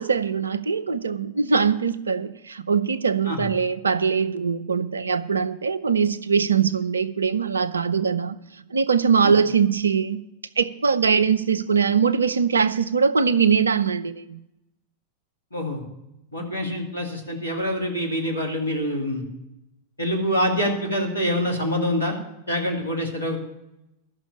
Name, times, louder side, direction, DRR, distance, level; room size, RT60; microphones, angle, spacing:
voice 1, 0.0-8.4 8.7-10.2 10.6-14.4 16.4-16.6, right 6 dB, 75° right, 0.5 m, -22 dB
voice 2, 15.5-15.8 16.3-19.2 20.0-22.2 22.5-23.4, equal, 85° left, 2.4 m, -25 dB
12.5 x 6.1 x 8.5 m
figure-of-eight pair, 90°, 0 cm